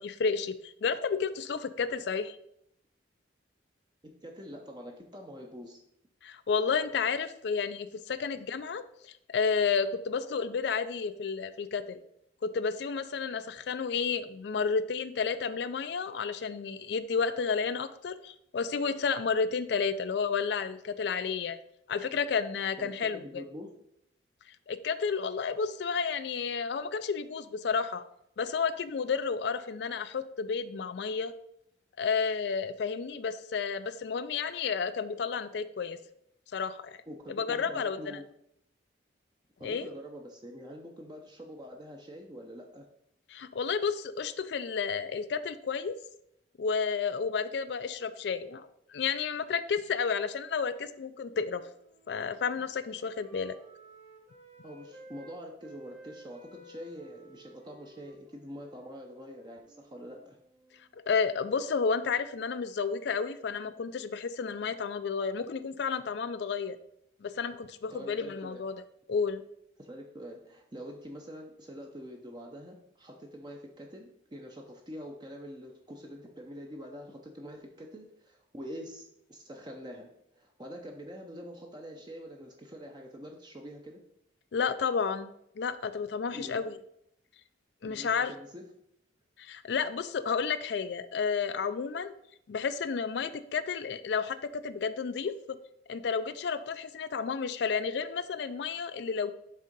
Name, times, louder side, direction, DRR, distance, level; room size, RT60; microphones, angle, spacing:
voice 1, 0.0-2.4 6.2-12.0 12.4-21.6 21.9-23.4 24.7-28.0 28.4-31.3 32.0-36.0 36.5-37.0 37.3-38.2 39.6-39.9 43.3-45.9 46.6-51.6 52.1-53.5 60.9-66.8 67.2-68.7 69.1-69.4 84.5-85.3 85.6-86.8 87.8-88.3 89.4-92.1 92.5-94.4 94.6-95.3 95.9-99.3, left 5 dB, 60° left, 12 dB, 0.4 m, -31 dB
voice 2, 4.0-5.8 22.8-23.7 37.1-38.2 39.6-42.8 54.6-60.4 67.9-68.6 69.8-84.0 86.3-86.6 87.8-88.6, equal, 20° right, 1 dB, 0.6 m, -45 dB
Wind instrument woodwind instrument, 50.4-55.3 55.6-60.9, right 1 dB, 40° right, 1.7 m, -56 dB
6.6 x 3.7 x 5.2 m, 0.75 s
head